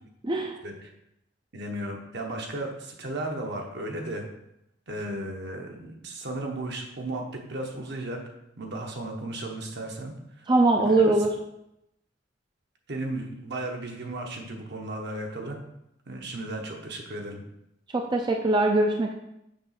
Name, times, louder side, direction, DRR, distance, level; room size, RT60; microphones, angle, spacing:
voice 1, 0.2-0.6 10.5-11.3 17.9-19.1, right 2 dB, 25° right, 2 dB, 0.4 m, -22 dB
voice 2, 1.5-4.2 4.9-7.2 7.5-8.2 8.6-10.4 10.8-11.1 12.9-15.6 16.1-17.4, right 1 dB, 65° right, 1 dB, 1.1 m, -35 dB
6.7 x 3.1 x 5.8 m, 0.82 s
head